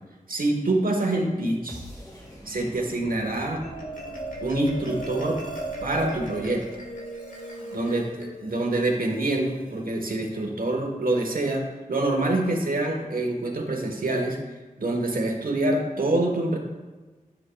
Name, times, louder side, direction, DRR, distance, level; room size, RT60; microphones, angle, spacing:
voice 1, 0.3-1.8 2.4-3.6 4.4-5.4 5.8-6.6 7.7-14.4 14.8-16.6, right 2 dB, 75° right, 3 dB, 1.2 m, -26 dB
sound 1, 1.7-7.7, equal, 25° left, 1.9 m, -45 dB
Marimba xylophone, 3.4-10.0, right 1 dB, 65° left, 1.7 m, -37 dB
9.8 x 7.4 x 2.3 m, 1.3 s
wide cardioid pair, 60°, 15 cm